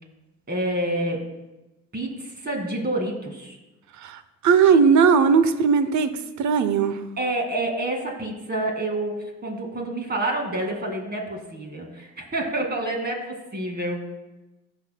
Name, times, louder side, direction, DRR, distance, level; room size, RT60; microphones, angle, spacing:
voice 1, 0.5-1.3 1.9-3.6 7.2-14.0, right 1 dB, 35° right, 2 dB, 2.1 m, -28 dB
voice 2, 4.0-6.1 6.4-7.0, right 6 dB, 70° right, 11 dB, 0.7 m, -18 dB
16.5 x 6.2 x 2.2 m, 1.0 s
cardioid pair, 90°, 30 cm